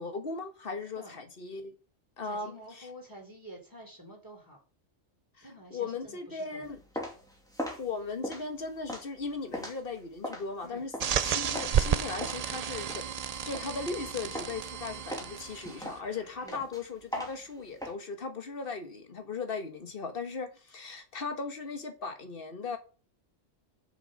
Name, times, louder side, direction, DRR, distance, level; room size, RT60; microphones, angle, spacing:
voice 1, 0.0-1.7 2.2-2.5 5.7-6.8 7.8-10.9 11.2-13.1 13.4-22.8, left 4 dB, 45° left, 1.6 m, -37 dB
voice 2, 2.2-4.6 5.4-6.7 10.6-10.8 16.4-16.6, equal, 15° right, 4.1 m, -49 dB
sound 1, 6.6-11.8 12.2-14.0 14.3-14.7 15.1-17.9, equal, 5° left, 2.4 m, -39 dB
sound 2, 11.0-15.9, right 8 dB, 80° right, 0.3 m, -32 dB
sound 3, 11.3-16.5, left 2 dB, 65° left, 3.5 m, -56 dB
7.4 x 6.5 x 5.2 m
omnidirectional pair, 1.3 m